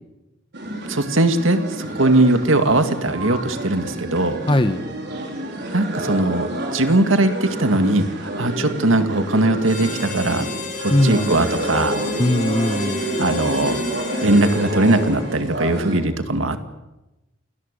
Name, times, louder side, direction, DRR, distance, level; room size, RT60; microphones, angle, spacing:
sound 1, 0.5-16.0, right 1 dB, 55° right, 4.9 m, -29 dB
voice 1, 0.9-4.4 5.7-10.4 10.8-12.0 13.2-13.8 14.2-16.7, right 2 dB, 80° right, 8 dB, 2.1 m, -19 dB
voice 2, 4.5-4.8 10.9-11.3 12.2-13.0, left 1 dB, 25° left, 10 dB, 1.2 m, -19 dB
Harmonica, 9.6-15.6, left 3 dB, 40° left, 6.6 m, -32 dB
29.0 x 19.0 x 6.8 m, 0.99 s
head